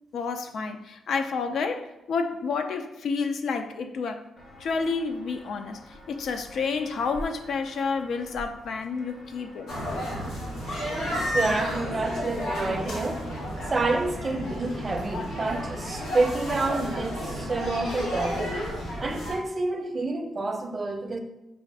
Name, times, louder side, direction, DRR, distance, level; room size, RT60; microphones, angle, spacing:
voice 1, 0.1-4.2 4.6-10.1, left 4 dB, 65° left, 0.3 m, -30 dB
Walk footsteps, 4.4-11.1, equal, 45° left, 0.8 m, -47 dB
sound 1, 9.7-19.3, equal, 85° left, 1.1 m, -32 dB
voice 2, 11.0-13.3 13.6-21.2, right 2 dB, 25° right, 0.4 m, -29 dB
5.0 x 2.4 x 3.3 m
cardioid pair, 120°, 0 cm